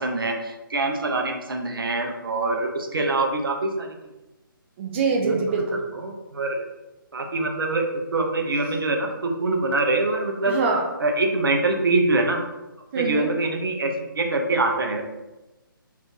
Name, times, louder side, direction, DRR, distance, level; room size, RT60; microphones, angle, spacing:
voice 1, 0.0-4.0 5.2-5.4 5.9-6.6 7.1-7.8 8.1-10.6 11.0-12.4 12.9-15.0, right 2 dB, 75° right, 2 dB, 0.6 m, -24 dB
voice 2, 4.8-5.8 10.5-10.9 12.9-13.3, right 4 dB, 30° right, 1 dB, 0.4 m, -24 dB
2.5 x 2.5 x 3.6 m, 1.1 s
figure-of-eight pair, 145°, 12 cm